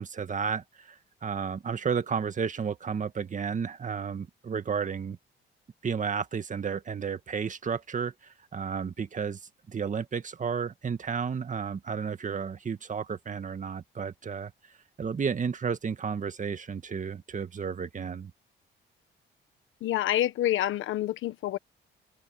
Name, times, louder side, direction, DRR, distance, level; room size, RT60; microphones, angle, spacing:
voice 1, 0.0-5.2 5.8-9.4 9.7-14.5 15.0-18.3, right 6 dB, 40° right, 1.9 m, -32 dB
voice 2, 19.8-21.6, left 13 dB, 80° left, 1.4 m, -27 dB
open air
cardioid pair, 90°, 20 cm